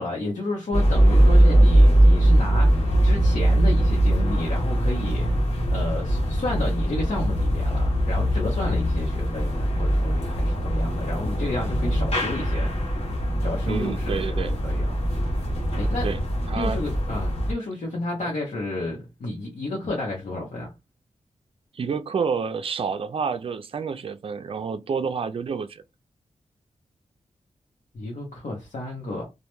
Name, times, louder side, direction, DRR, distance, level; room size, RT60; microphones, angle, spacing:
voice 1, 0.0-5.3 5.7-12.7 13.4-14.9 15.8-16.1 16.5-20.7 27.9-29.2, left 2 dB, 75° left, 0.8 m, -31 dB
sound 1, 0.7-17.5, right 1 dB, 55° left, 1.0 m, -21 dB
voice 2, 13.7-14.5 16.0-16.2 16.5-16.8 21.7-25.8, right 5 dB, 50° right, 0.3 m, -29 dB
2.1 x 2.1 x 3.0 m
cardioid pair, 60°, 13 cm